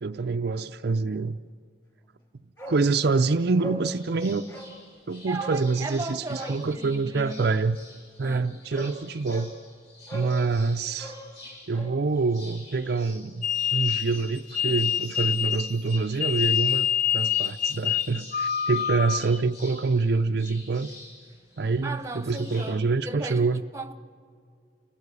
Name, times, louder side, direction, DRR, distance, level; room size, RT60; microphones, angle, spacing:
voice 1, 0.0-1.4 2.7-4.5 5.1-7.8 8.2-9.5 10.1-11.1 11.7-16.9 17.1-20.9 21.6-23.6, right 4 dB, 55° right, 0.5 m, -26 dB
Bark, 2.6-2.8 3.1-3.2 3.6-3.9 4.5-4.7 5.4-5.6 6.3-6.6 8.2-8.3 8.7-8.9 9.3-9.5 10.1-10.4 10.9-12.0 12.2-12.3, right 1 dB, 20° left, 4.0 m, -39 dB
Cantos de Passaros, 3.9-22.8, left 2 dB, 60° left, 7.0 m, -48 dB
voice 2, 5.3-7.5 8.2-8.6 21.8-23.9, right 3 dB, 15° right, 1.0 m, -36 dB
sound 1, 13.4-19.4, left 9 dB, 40° left, 0.6 m, -26 dB
30.0 x 17.0 x 8.2 m
head